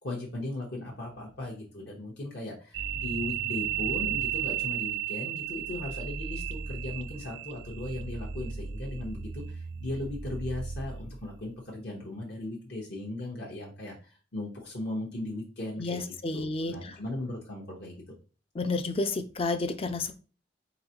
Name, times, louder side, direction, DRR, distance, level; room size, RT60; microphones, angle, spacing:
voice 1, 0.0-18.0, left 2 dB, 60° left, -2 dB, 1.0 m, -37 dB
sound 1, 2.7-11.3, right 9 dB, 70° right, 0.5 m, -34 dB
voice 2, 15.8-16.7 18.6-20.1, left 3 dB, 30° left, 9 dB, 0.4 m, -30 dB
4.1 x 4.0 x 2.9 m, 0.36 s
head